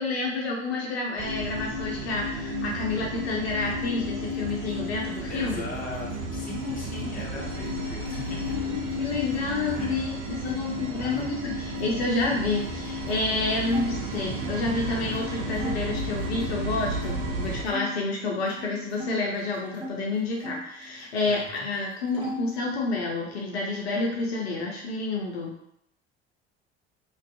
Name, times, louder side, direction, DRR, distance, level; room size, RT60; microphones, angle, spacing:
voice 1, 0.0-5.7 8.1-25.5, left 3 dB, 70° left, -2 dB, 0.5 m, -29 dB
sound 1, 1.2-17.6, equal, 55° right, 0.6 m, -32 dB
sound 2, 4.2-9.9 10.2-11.2 11.8-14.7 15.1-15.3 15.5-18.0 18.3-20.0 20.4-21.5 21.7-22.6, equal, 15° right, 0.8 m, -42 dB
voice 2, 5.3-8.7 9.8-9.9 10.9-11.3 21.3-21.7, left 2 dB, 25° left, -3 dB, 0.7 m, -38 dB
2.4 x 2.2 x 2.4 m, 0.74 s
figure-of-eight pair, 60°, 33 cm